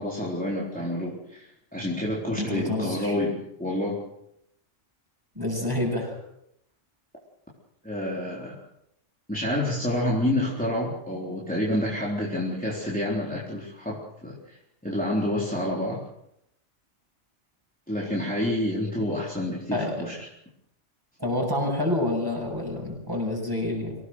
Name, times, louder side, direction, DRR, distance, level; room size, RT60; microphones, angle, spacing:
voice 1, 0.0-4.0 7.8-8.6 9.3-14.6 14.8-16.0 17.9-20.2, left 1 dB, 5° left, -5 dB, 4.0 m, -28 dB
voice 2, 2.4-3.2 5.3-6.2 19.7-20.1 21.2-24.0, left 1 dB, 20° right, 0 dB, 7.9 m, -28 dB
25.5 x 18.0 x 6.5 m, 0.78 s
omnidirectional pair, 1.2 m